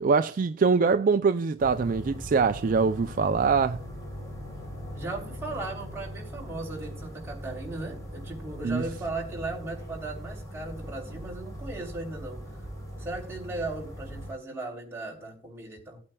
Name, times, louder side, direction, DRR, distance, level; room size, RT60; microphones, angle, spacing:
voice 1, 0.0-3.8 8.6-8.8, right 5 dB, 45° right, 0.4 m, -23 dB
sound 1, 1.6-14.3, equal, 20° left, 3.3 m, -40 dB
voice 2, 4.9-12.5 13.0-16.0, right 2 dB, 15° right, 3.3 m, -37 dB
18.0 x 8.7 x 2.3 m
head